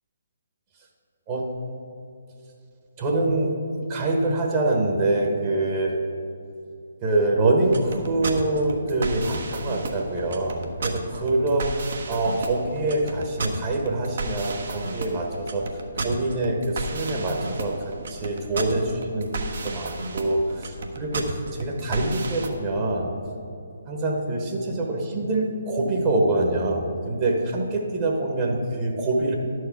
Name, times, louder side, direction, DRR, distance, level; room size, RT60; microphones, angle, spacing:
voice 1, 3.0-6.0 7.0-11.7 12.1-15.6 15.9-23.1 23.9-29.4, right 2 dB, 30° right, 0 dB, 1.2 m, -25 dB
sound 1, 7.6-22.5, right 3 dB, 55° right, 1.0 m, -32 dB
11.5 x 4.8 x 5.9 m, 2.7 s
figure-of-eight pair, 140°, 0 cm